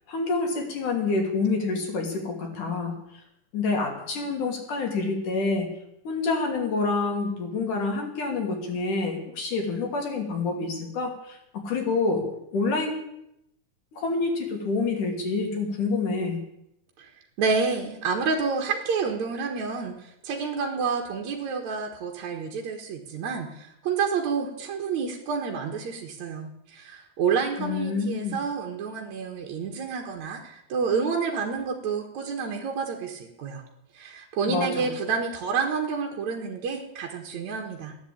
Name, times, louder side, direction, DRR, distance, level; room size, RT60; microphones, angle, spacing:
voice 1, 0.1-3.2 3.5-5.7 6.0-12.2 12.5-13.1 13.9-16.4 27.6-28.4 34.5-34.9, left 3 dB, 60° left, 1 dB, 4.2 m, -27 dB
voice 2, 17.4-33.6 33.9-38.0, right 5 dB, 55° right, 2 dB, 2.6 m, -29 dB
15.5 x 10.5 x 8.7 m, 0.80 s
omnidirectional pair, 4.2 m